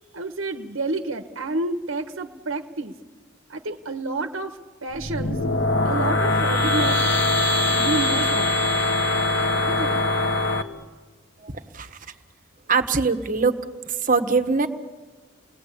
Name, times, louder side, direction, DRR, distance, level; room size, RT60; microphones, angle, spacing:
voice 1, 0.1-2.9 3.5-5.4 5.8-7.0 7.7-8.5 9.5-10.0, right 2 dB, 80° right, 6 dB, 1.2 m, -29 dB
sound 1, 4.9-10.6, left 2 dB, 60° left, 1.5 m, -22 dB
voice 2, 11.4-12.0 12.7-13.5 13.9-14.7, right 4 dB, 40° right, 9 dB, 1.4 m, -22 dB
29.5 x 19.5 x 8.5 m, 1.4 s
head